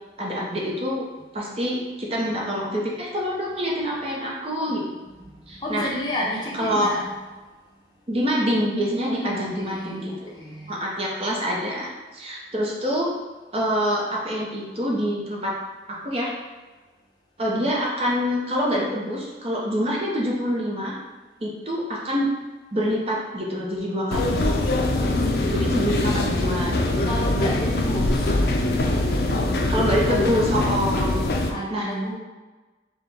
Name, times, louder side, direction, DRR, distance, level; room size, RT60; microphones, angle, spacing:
voice 1, 0.2-1.0 1.3-4.8 5.5-5.9 6.6-6.9 8.1-10.3 10.7-13.1 13.5-15.6 15.9-16.3 17.4-20.9 21.4-22.3 22.7-24.3 25.5-27.1 29.7-31.2 31.7-31.9, equal, 35° right, -3 dB, 0.7 m, -26 dB
voice 2, 5.2-7.2 9.0-10.8 25.8-26.0 27.0-28.4 30.9-32.1, equal, 25° left, -4 dB, 0.7 m, -32 dB
sound 1, 24.1-31.5, left 2 dB, 60° left, 0.5 m, -23 dB
4.9 x 2.2 x 3.4 m, 1.2 s
head